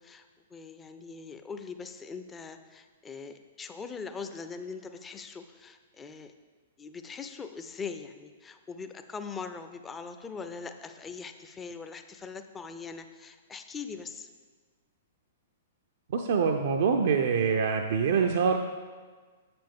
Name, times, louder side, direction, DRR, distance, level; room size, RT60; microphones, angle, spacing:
voice 1, 0.0-6.3 6.8-14.3, left 5 dB, 15° left, 8 dB, 0.4 m, -41 dB
voice 2, 16.1-18.6, right 6 dB, 55° right, 4 dB, 0.4 m, -25 dB
7.4 x 6.8 x 3.6 m, 1.5 s
figure-of-eight pair, 110°, 0 cm